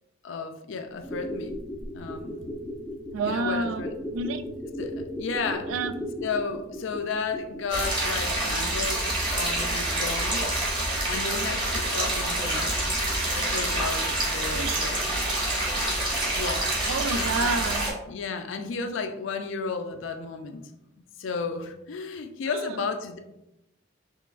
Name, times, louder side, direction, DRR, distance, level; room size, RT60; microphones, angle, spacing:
voice 1, 0.2-1.6 1.9-2.4 3.2-3.9 4.8-5.7 6.2-9.1 9.3-10.6 11.0-12.8 13.3-15.0 16.3-16.7 17.1-17.5 18.1-20.7 21.2-23.2, left 4 dB, 70° left, 6 dB, 0.4 m, -33 dB
sound 1, 0.9-7.8 8.1-8.2, equal, 5° left, 0.4 m, -36 dB
voice 2, 3.1-4.4 5.7-6.0 14.5-14.9 16.9-17.9 22.5-22.8, right 3 dB, 85° right, 10 dB, 0.3 m, -29 dB
sound 2, 7.7-17.9, right 1 dB, 25° right, 1.0 m, -27 dB
4.6 x 3.1 x 2.4 m, 0.86 s
head